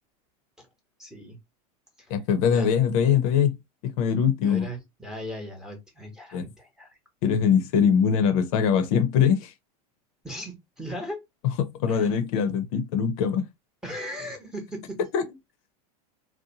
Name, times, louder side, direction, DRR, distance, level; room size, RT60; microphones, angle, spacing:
voice 1, 1.0-1.4 2.0-2.1 2.5-2.7 4.4-6.9 10.2-11.2 11.9-12.1 13.8-15.0, equal, 5° right, 0.9 m, -38 dB
voice 2, 2.1-3.6 4.0-4.7 6.3-6.4 7.2-9.5 11.8-13.4 15.1-15.2, left 7 dB, 65° left, 0.6 m, -22 dB
2.7 x 2.1 x 2.7 m
supercardioid pair, 130°, 19 cm